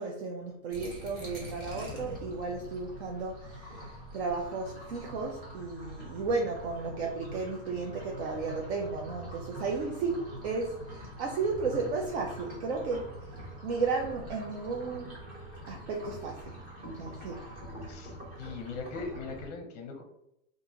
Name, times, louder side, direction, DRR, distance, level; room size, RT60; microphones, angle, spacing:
voice 1, 0.0-13.2 13.6-15.2 15.7-16.5 16.8-17.4, right 4 dB, 55° right, 1 dB, 0.5 m, -34 dB
sound 1, 0.7-19.5, equal, 20° right, 1.0 m, -44 dB
voice 2, 17.9-20.0, left 4 dB, 30° left, 3 dB, 0.7 m, -40 dB
2.9 x 2.6 x 3.6 m, 0.82 s
supercardioid pair, 170°, 41 cm